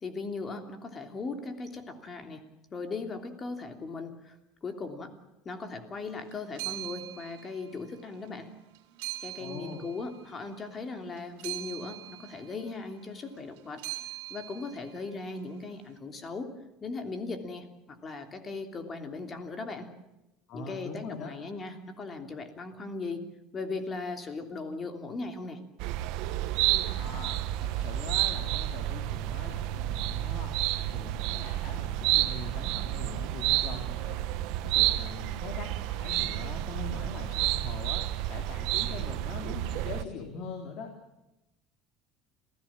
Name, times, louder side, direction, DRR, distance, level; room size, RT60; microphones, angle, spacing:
voice 1, 0.0-2.4 2.7-5.1 5.4-8.5 9.2-13.8 14.3-16.5 16.8-19.9 20.5-23.2 23.5-25.6, left 3 dB, 30° left, 6 dB, 3.2 m, -38 dB
sound 1, 6.0-15.9, right 17 dB, 85° right, 2.5 m, -43 dB
voice 2, 9.4-9.8 20.5-21.3 26.9-34.2 34.6-40.9, left 4 dB, 55° left, 3 dB, 3.5 m, -42 dB
sound 2, 25.8-40.0, right 15 dB, 70° right, 1.1 m, -30 dB
27.5 x 16.0 x 7.5 m, 0.94 s
supercardioid pair, 120°, 0 cm